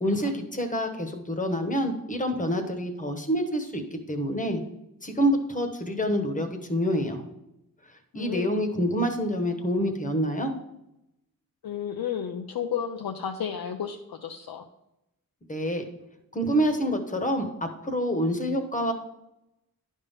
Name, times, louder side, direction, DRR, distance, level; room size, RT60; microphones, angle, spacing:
voice 1, 0.0-4.6 5.0-7.2 8.1-10.5 15.5-15.8 16.3-18.9, equal, 20° left, 5 dB, 1.1 m, -27 dB
voice 2, 8.1-8.5 11.6-14.6, left 8 dB, 80° left, 4 dB, 0.6 m, -32 dB
10.5 x 3.6 x 5.6 m, 0.85 s
wide cardioid pair, 120°, 36 cm